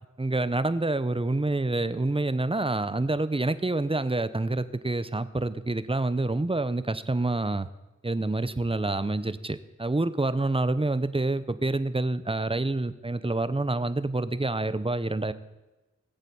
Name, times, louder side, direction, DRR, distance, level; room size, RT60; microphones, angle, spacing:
voice 1, 0.2-7.7 8.0-15.3, right 2 dB, 20° right, 14 dB, 0.9 m, -27 dB
18.5 x 8.2 x 7.1 m, 1.1 s
cardioid pair, 40°, 30 cm